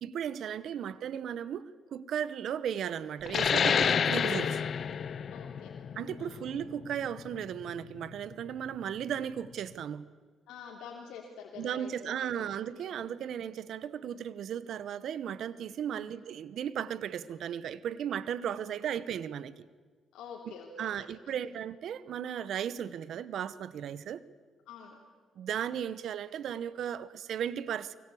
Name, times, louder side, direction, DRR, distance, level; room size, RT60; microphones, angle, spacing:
voice 1, 0.0-4.6 6.0-10.1 11.6-19.6 20.8-24.2 25.4-28.0, right 9 dB, 70° right, 0.9 m, -36 dB
sound 1, 3.3-8.4, left 7 dB, 55° left, 0.9 m, -30 dB
voice 2, 5.3-5.8 6.2-6.5 10.5-12.1 12.8-13.1 15.9-16.1 18.7-18.8 20.1-21.5 24.7-25.0, left 6 dB, 85° left, 3.0 m, -48 dB
23.5 x 22.0 x 8.5 m
cardioid pair, 90°, 0 cm